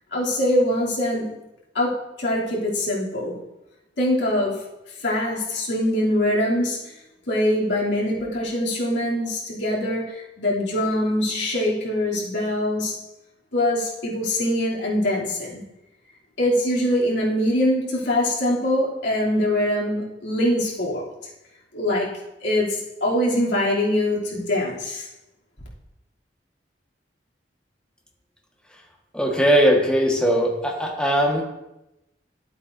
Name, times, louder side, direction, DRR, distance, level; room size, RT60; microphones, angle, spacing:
voice 1, 0.1-1.3 1.7-3.4 4.0-4.6 5.0-6.9 7.3-13.0 13.5-15.6 16.4-21.1 21.7-22.1 22.4-25.1, left 1 dB, 85° left, -6 dB, 3.0 m, -23 dB
voice 2, 29.1-31.4, equal, 5° left, -1 dB, 1.6 m, -19 dB
12.0 x 8.2 x 2.7 m, 0.93 s
head